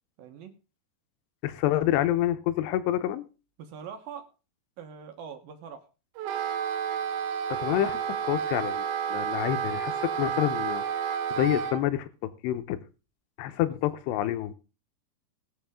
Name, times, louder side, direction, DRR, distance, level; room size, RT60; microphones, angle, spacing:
voice 1, 0.2-0.5 3.6-4.3 4.8-5.9, right 7 dB, 70° right, 5 dB, 2.5 m, -42 dB
voice 2, 1.4-3.2 7.5-8.8 9.1-12.8 13.4-14.5, left 13 dB, 85° left, 11 dB, 2.9 m, -28 dB
Wind instrument woodwind instrument, 6.2-11.8, right 8 dB, 90° right, 3.2 m, -30 dB
20.0 x 7.1 x 3.6 m, 0.33 s
omnidirectional pair, 5.0 m